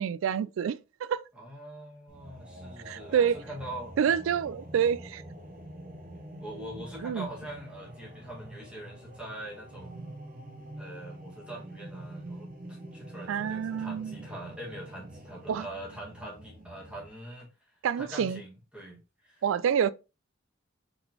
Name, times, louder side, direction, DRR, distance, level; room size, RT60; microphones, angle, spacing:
voice 1, 0.0-1.2 2.9-3.4 4.0-5.2 7.0-7.3 13.3-14.2 15.5-15.7 17.8-18.4 19.4-19.9, right 8 dB, 80° right, 0.3 m, -27 dB
voice 2, 1.3-4.0 6.4-10.1 10.8-17.5 17.9-19.4, right 1 dB, 5° right, 1.6 m, -43 dB
sound 1, 2.1-17.1, right 1 dB, 45° right, 0.7 m, -46 dB
3.9 x 3.6 x 2.8 m
head